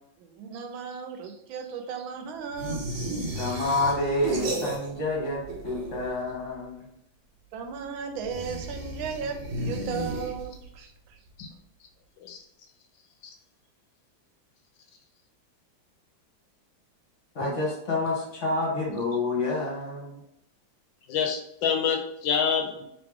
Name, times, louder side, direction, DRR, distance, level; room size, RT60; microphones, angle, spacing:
voice 1, 0.2-2.8 7.5-9.4 9.6-11.2, right 6 dB, 85° right, 5 dB, 1.4 m, -36 dB
sound 1, 2.6-5.2 5.4-6.2 8.2-10.7, right 2 dB, 65° right, 1.5 m, -34 dB
voice 2, 3.3-6.8 17.3-20.2, left 2 dB, 45° left, -4 dB, 1.3 m, -28 dB
voice 3, 21.1-22.8, left 7 dB, 75° left, 3 dB, 1.3 m, -27 dB
3.2 x 3.0 x 3.6 m, 0.78 s
omnidirectional pair, 2.1 m